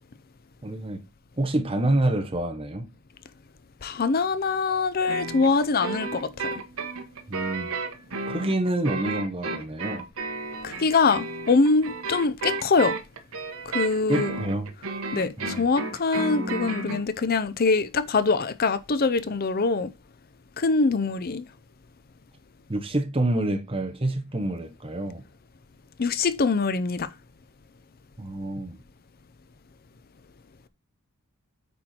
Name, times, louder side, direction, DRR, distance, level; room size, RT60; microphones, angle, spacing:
voice 1, 0.6-1.0 1.4-2.9 7.3-7.8 8.3-10.1 14.1-14.7 15.4-15.7 22.7-25.2 28.2-28.8, right 1 dB, 25° right, 1.2 m, -27 dB
voice 2, 3.8-6.5 10.6-13.0 13.7-14.3 15.1-19.9 20.6-21.5 26.0-27.1, left 4 dB, 45° left, 0.5 m, -23 dB
sound 1, 5.1-17.0, right 3 dB, 70° right, 1.3 m, -32 dB
8.6 x 4.6 x 4.4 m
head